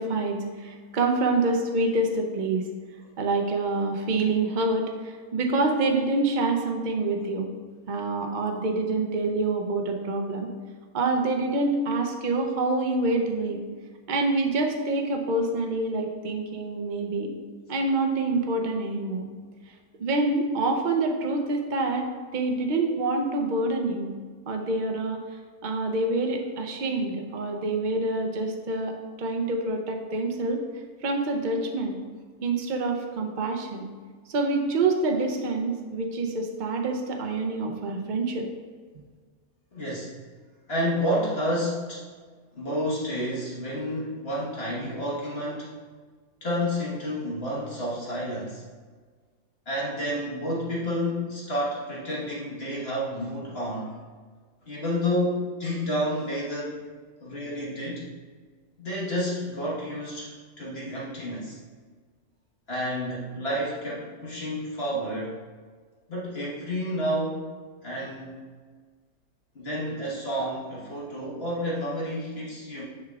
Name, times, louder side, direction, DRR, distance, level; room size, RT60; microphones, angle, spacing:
voice 1, 0.0-2.6 3.2-7.5 7.9-10.5 10.9-13.6 14.1-17.3 17.7-19.2 20.0-24.1 24.5-25.2 25.6-30.6 31.0-32.0 32.4-33.9 34.3-38.5, right 2 dB, 45° right, 3 dB, 0.6 m, -26 dB
voice 2, 39.7-40.1 40.7-42.0 42.5-45.7 46.4-48.6 49.6-53.9 54.6-56.8 57.2-58.1 58.8-61.6 62.7-65.4 66.1-67.5 67.8-68.4 69.5-72.8, equal, 45° left, -6 dB, 1.6 m, -30 dB
6.9 x 6.4 x 2.4 m, 1.5 s
omnidirectional pair, 1.5 m